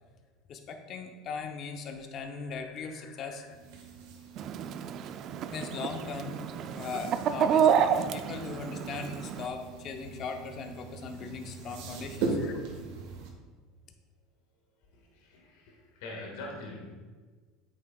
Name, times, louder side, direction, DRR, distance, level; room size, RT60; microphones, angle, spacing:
voice 1, 0.5-3.5 5.5-12.6, left 5 dB, 45° left, 5 dB, 0.7 m, -39 dB
sound 1, 3.4-13.3, right 3 dB, 80° right, 1.4 m, -40 dB
Chicken rooster, 4.4-9.5, right 8 dB, 50° right, 0.4 m, -29 dB
voice 2, 14.9-16.9, left 2 dB, 80° left, -1 dB, 1.6 m, -44 dB
8.5 x 6.4 x 2.3 m, 1.4 s
supercardioid pair, 115°, 0 cm